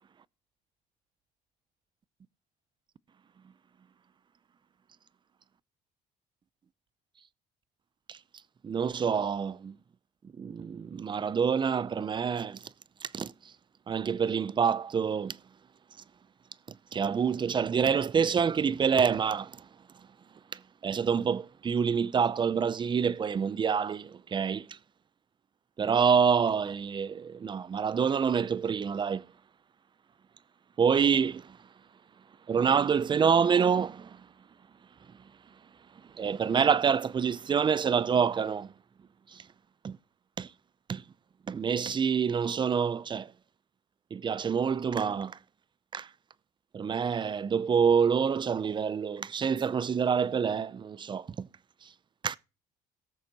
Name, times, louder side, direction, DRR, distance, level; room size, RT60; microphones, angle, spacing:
voice 1, 8.6-9.8 10.4-12.6 13.0-13.3 13.9-15.4 16.9-19.6 20.8-24.8 25.8-29.2 30.8-31.6 32.5-34.2 36.2-38.7 39.3-39.4 39.8-40.0 40.4-40.5 40.9-41.0 41.5-43.3 44.1-45.4 45.9-46.1 46.7-51.5 52.2-52.4, right 6 dB, 30° right, 0.5 m, -27 dB
18.5 x 6.6 x 2.9 m
cardioid pair, 110°, 17 cm